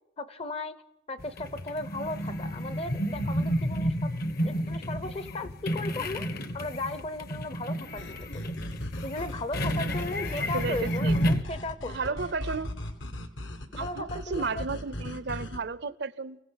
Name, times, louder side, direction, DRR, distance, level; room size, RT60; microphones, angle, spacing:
voice 1, 0.2-0.8 1.1-4.1 4.4-8.5 9.0-12.1 13.7-14.6, left 2 dB, 30° left, 0.7 m, -36 dB
sound 1, 1.2-11.4, equal, 50° left, 1.1 m, -31 dB
sound 2, 8.0-15.6, left 1 dB, 70° left, 1.5 m, -38 dB
voice 2, 10.4-11.2 11.8-12.8 13.8-16.4, right 4 dB, 55° right, 0.6 m, -33 dB
29.5 x 16.5 x 5.8 m
head